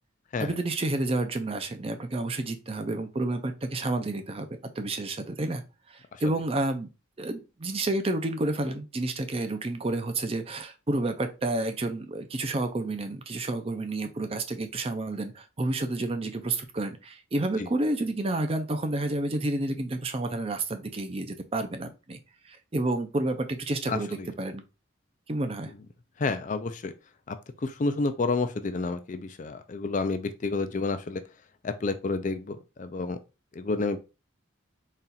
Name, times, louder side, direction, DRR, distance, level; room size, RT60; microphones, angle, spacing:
voice 1, 0.4-4.5 4.8-5.6 5.9-6.9 7.2-22.2 22.4-24.6 25.3-25.7, right 2 dB, 30° right, 0.5 m, -30 dB
voice 2, 23.9-24.3 26.2-26.9 27.3-27.4 27.6-31.2 31.6-33.2 33.5-34.0, left 3 dB, 40° left, 0.4 m, -30 dB
4.2 x 2.4 x 3.9 m
head